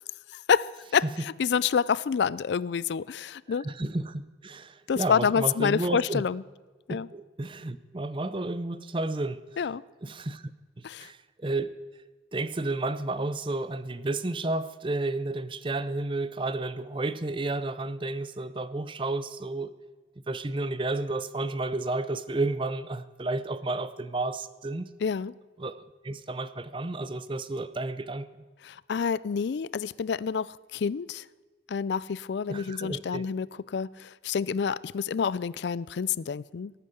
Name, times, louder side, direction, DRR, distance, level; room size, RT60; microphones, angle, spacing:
voice 1, 0.3-3.7 4.9-6.4 6.9-7.1 9.6-9.8 10.8-11.1 25.0-25.3 28.6-31.2 31.7-36.7, left 6 dB, 70° left, 0.4 m, -28 dB
voice 2, 3.6-6.2 6.9-9.4 10.0-10.5 10.8-11.8 12.3-19.7 20.3-24.9 25.6-28.3 32.5-33.2, right 2 dB, 25° right, 0.6 m, -32 dB
17.5 x 9.2 x 8.0 m
head